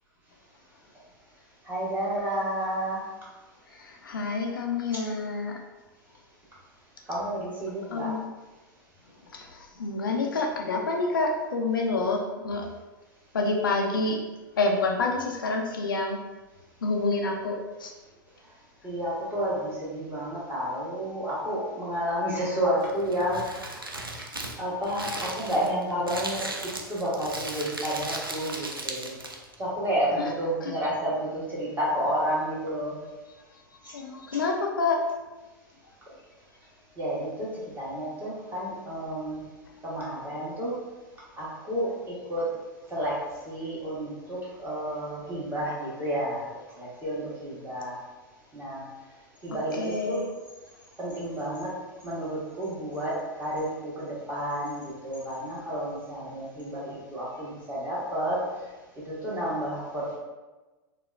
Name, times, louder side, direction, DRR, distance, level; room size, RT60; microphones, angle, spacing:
voice 1, 1.6-3.0 7.1-8.1 18.8-23.8 24.6-26.5 26.9-29.1 29.6-33.0 37.0-39.4 39.8-40.7 41.4-42.5 42.9-43.2 43.5-46.4 46.7-48.0 48.5-48.8 49.4-50.2 51.0-51.7 52.0-58.4 59.0-60.2, equal, 20° right, -7 dB, 1.3 m, -30 dB
voice 2, 3.7-5.6 7.9-8.3 9.3-12.7 13.3-14.2 14.6-16.2 16.8-17.9 30.2-30.3 30.6-30.7 33.8-35.1 49.7-50.2, left 3 dB, 70° left, 1 dB, 0.5 m, -28 dB
Crumpling crinkling, 22.8-29.6, right 2 dB, 90° right, 0.4 m, -37 dB
4.3 x 2.1 x 2.4 m, 1.2 s
figure-of-eight pair, 90°, 11 cm